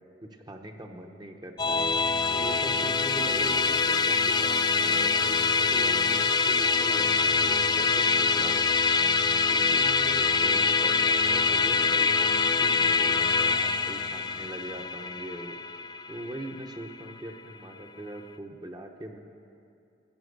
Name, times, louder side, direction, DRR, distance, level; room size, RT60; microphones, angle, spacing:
voice 1, 0.2-1.8 2.3-8.8 9.5-12.3 12.6-15.6 16.1-19.2, right 1 dB, 25° right, 3 dB, 0.8 m, -41 dB
Musical instrument, 1.6-17.1, left 4 dB, 25° left, 0.4 m, -24 dB
14.5 x 7.0 x 8.1 m, 2.5 s
head